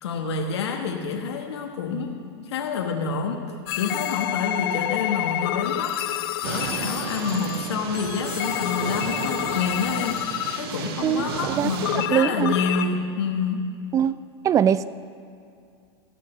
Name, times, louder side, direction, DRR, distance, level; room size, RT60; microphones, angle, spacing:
voice 1, 0.0-13.7, left 5 dB, 85° left, 2 dB, 1.2 m, -28 dB
sound 1, 3.7-10.9 11.8-12.9, left 13 dB, 65° left, 0.6 m, -29 dB
sound 2, 6.4-12.1, right 8 dB, 65° right, 0.9 m, -33 dB
voice 2, 11.0-12.5 13.9-14.2 14.4-14.8, right 9 dB, 25° right, 16 dB, 0.4 m, -22 dB
17.5 x 6.6 x 5.4 m, 2.4 s
hypercardioid pair, 115°, 14 cm